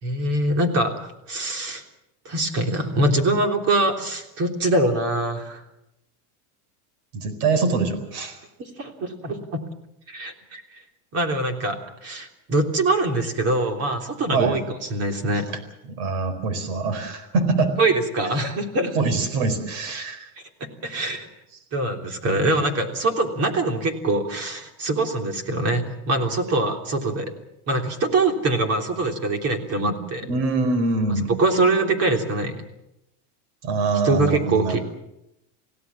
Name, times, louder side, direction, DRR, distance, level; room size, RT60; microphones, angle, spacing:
voice 1, 0.0-1.8 2.2-5.6 8.6-9.6 10.1-10.6 11.1-15.5 17.8-19.0 19.9-20.1 20.8-21.3 21.7-27.3 27.7-30.2 31.4-32.6 34.0-34.8, right 2 dB, 30° right, 4 dB, 3.4 m, -23 dB
voice 2, 7.1-8.4 14.3-14.6 16.0-17.7 18.3-18.5 18.9-20.3 29.8-30.0 30.2-31.3 33.6-34.8, right 3 dB, 70° right, 11 dB, 4.5 m, -24 dB
28.5 x 17.0 x 7.3 m, 0.87 s
supercardioid pair, 160°, 46 cm